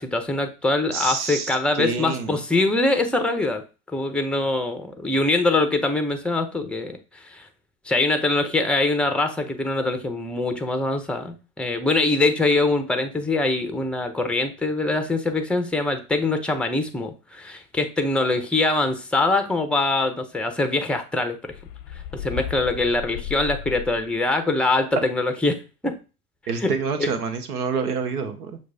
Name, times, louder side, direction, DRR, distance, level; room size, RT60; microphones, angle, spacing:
voice 1, 0.0-3.6 3.9-7.5 7.9-21.5 22.2-25.6 25.8-25.9 26.6-26.7 27.0-27.1, left 2 dB, ahead, 7 dB, 0.7 m, -23 dB
voice 2, 0.9-2.4 26.5-28.6, right 5 dB, 85° right, 8 dB, 1.0 m, -27 dB
sound 1, 21.5-24.3, left 11 dB, 50° left, 0.6 m, -35 dB
6.1 x 2.5 x 3.4 m, 0.32 s
hypercardioid pair, 85°, 45 cm